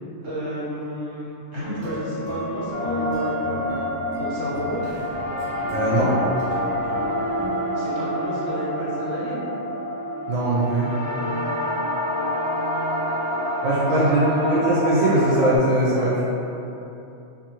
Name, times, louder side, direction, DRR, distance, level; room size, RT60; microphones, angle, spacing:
voice 1, 0.2-3.6 4.2-4.8 7.7-9.4 14.0-14.6, right 1 dB, 60° right, -11 dB, 1.4 m, -31 dB
sound 1, 1.6-7.5, left 2 dB, 30° right, 0.9 m, -32 dB
sound 2, 2.7-15.6, equal, 65° left, 1.1 m, -27 dB
voice 2, 5.7-6.1 10.3-10.9 13.6-14.2 14.5-16.2, right 1 dB, 90° right, -8 dB, 1.0 m, -20 dB
2.7 x 2.7 x 2.8 m, 2.8 s
omnidirectional pair, 1.3 m